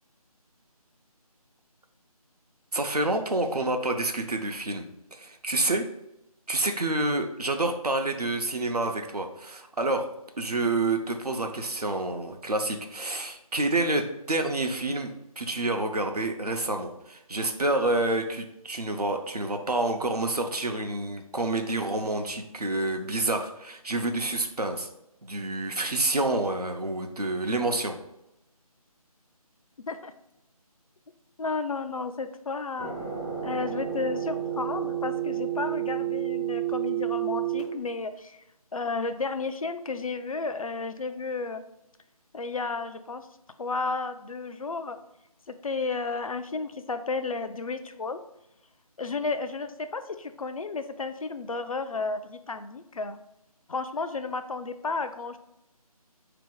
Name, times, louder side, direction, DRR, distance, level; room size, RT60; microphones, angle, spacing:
voice 1, 2.7-5.9 6.5-10.1 10.4-24.9 25.2-27.9, right 2 dB, 90° right, 4 dB, 0.7 m, -28 dB
voice 2, 31.4-33.0 33.4-38.4 38.7-41.6 42.3-43.3 43.6-45.0 45.5-48.2 49.0-53.2 53.7-55.4, left 4 dB, 65° left, 9 dB, 0.4 m, -32 dB
sound 1, 32.8-37.6, right 11 dB, 15° right, 0.4 m, -30 dB
4.1 x 2.8 x 3.7 m, 0.85 s
figure-of-eight pair, 160°, 19 cm